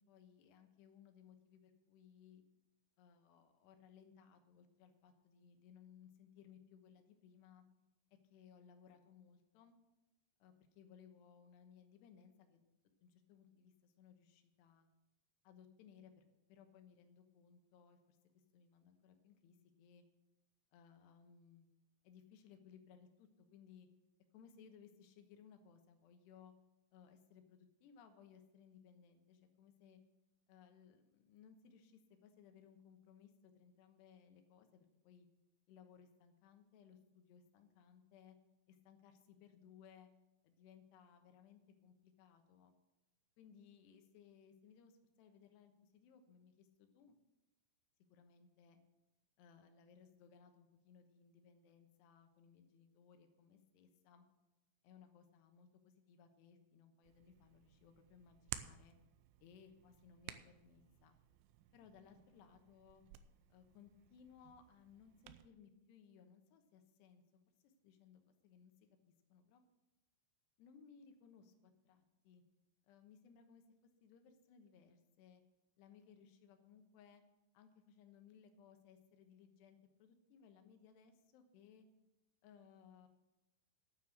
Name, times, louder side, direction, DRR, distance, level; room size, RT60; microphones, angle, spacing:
voice 1, 0.1-2.4 3.0-7.6 8.3-9.7 10.4-12.6 13.0-14.9 15.4-16.2 16.5-18.2 18.5-20.0 20.7-21.7 22.0-23.9 24.3-26.5 26.9-30.0 30.5-35.3 35.7-38.4 38.7-40.1 40.4-42.7 43.4-47.1 48.1-48.8 49.4-54.3 54.8-58.9 59.4-61.2 61.7-63.0 63.5-68.7 69.3-69.6 70.6-72.4 72.9-73.6 74.0-75.4 75.8-77.2 77.5-81.9 82.4-83.1, left 7 dB, 75° left, 6 dB, 3.0 m, -63 dB
Hands, 57.0-65.5, right 13 dB, 85° right, 3.0 m, -55 dB
9.6 x 9.3 x 6.4 m, 0.94 s
omnidirectional pair, 5.3 m